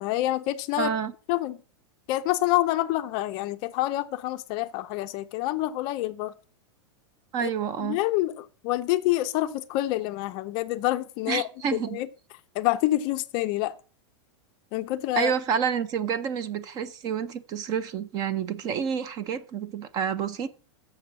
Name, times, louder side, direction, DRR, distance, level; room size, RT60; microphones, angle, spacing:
voice 1, 0.0-0.9 1.3-1.6 2.1-6.3 7.4-7.5 7.8-11.4 11.7-12.1 12.5-13.8 14.7-15.3, left 16 dB, 35° left, 0.5 m, -27 dB
voice 2, 0.8-1.1 7.3-8.0 11.3-12.0 15.2-20.5, right 7 dB, 25° right, 0.5 m, -29 dB
6.9 x 6.8 x 5.8 m
supercardioid pair, 165°, 15 cm